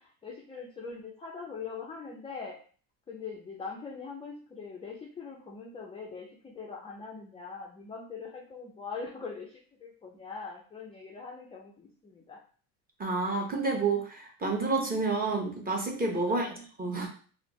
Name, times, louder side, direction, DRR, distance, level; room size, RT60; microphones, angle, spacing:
voice 1, 0.0-2.6 3.1-12.4 16.2-16.7, left 5 dB, 15° left, -2 dB, 0.4 m, -42 dB
voice 2, 13.0-16.5 16.8-17.1, right 3 dB, 20° right, 0 dB, 0.9 m, -29 dB
3.2 x 2.0 x 3.0 m, 0.42 s
supercardioid pair, 95°, 47 cm